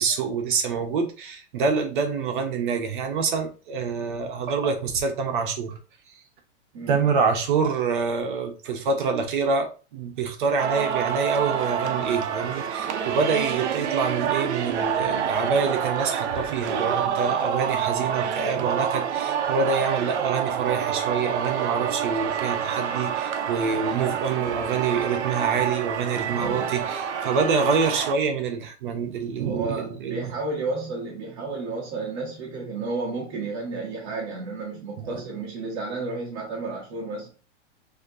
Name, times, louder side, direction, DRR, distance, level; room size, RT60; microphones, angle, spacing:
voice 1, 0.0-5.8 6.9-30.3 35.0-35.2, right 5 dB, 45° right, 1.0 m, -26 dB
voice 2, 6.7-7.0 26.3-26.7 29.4-37.3, right 3 dB, 30° right, 1.0 m, -32 dB
Singing, 10.6-28.1, right 8 dB, 75° right, 0.7 m, -27 dB
6.2 x 2.9 x 2.7 m
supercardioid pair, 175°, 35 cm